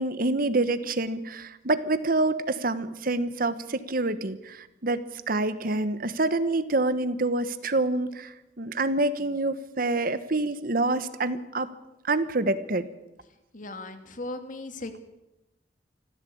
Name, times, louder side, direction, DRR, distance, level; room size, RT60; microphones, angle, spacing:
voice 1, 0.0-11.7 12.0-12.9, right 2 dB, 50° right, 13 dB, 1.3 m, -27 dB
voice 2, 13.5-15.0, left 2 dB, 45° left, 8 dB, 2.5 m, -37 dB
25.5 x 15.0 x 8.6 m, 0.94 s
head